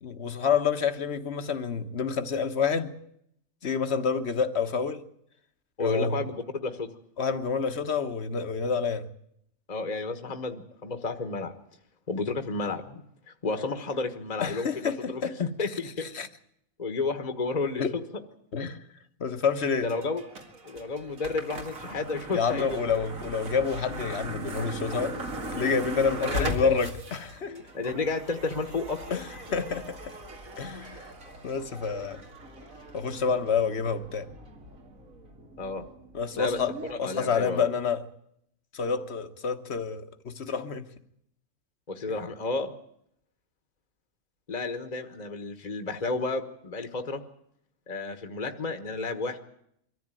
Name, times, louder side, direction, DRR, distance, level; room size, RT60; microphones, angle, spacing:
voice 1, 0.0-2.9 3.6-5.0 5.8-6.2 7.2-9.1 14.4-15.3 16.1-16.3 17.8-17.9 18.5-18.8 19.2-19.9 22.3-25.2 25.5-27.6 29.1-30.2 30.6-31.1 31.4-32.2 32.9-34.3 36.1-36.7 37.0-38.0 38.7-40.8, left 6 dB, 50° left, 1.5 m, -28 dB
voice 2, 5.8-6.9 9.7-11.5 12.1-13.0 13.4-16.0 16.8-18.2 19.8-20.2 20.6-22.8 26.3-26.7 27.5-29.2 35.6-35.8 36.4-36.6 36.9-37.7 41.9-42.7 44.5-47.2 47.9-49.4, left 3 dB, 30° left, 1.4 m, -31 dB
sound 1, 19.9-36.9, right 1 dB, 75° right, 2.7 m, -39 dB
23.5 x 14.0 x 9.1 m
omnidirectional pair, 1.4 m